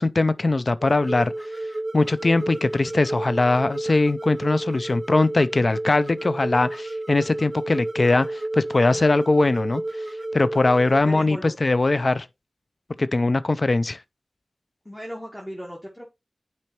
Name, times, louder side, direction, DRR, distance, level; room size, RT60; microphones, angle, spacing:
voice 1, 0.0-1.3 1.9-9.8 10.3-12.3 13.0-14.0, left 2 dB, 55° left, 0.4 m, -21 dB
sound 1, 0.8-11.0, right 1 dB, 35° right, 1.0 m, -31 dB
voice 2, 10.9-11.5 14.8-16.1, equal, 5° left, 1.5 m, -37 dB
9.1 x 4.3 x 2.9 m
wide cardioid pair, 45°, 0 cm